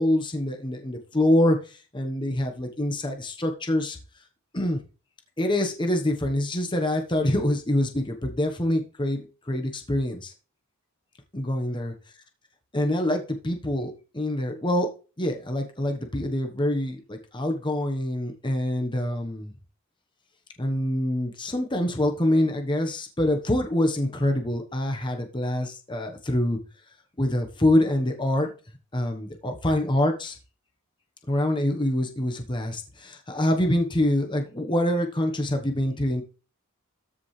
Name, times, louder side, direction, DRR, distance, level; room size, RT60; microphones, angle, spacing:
voice 1, 0.0-1.6 1.9-4.0 4.5-4.8 5.4-10.3 11.3-11.9 12.7-14.9 15.2-19.5 20.6-26.6 27.2-28.5 28.9-30.4 31.3-36.2, left 1 dB, 20° left, 4 dB, 1.2 m, -25 dB
13.0 x 5.0 x 3.3 m, 0.33 s
head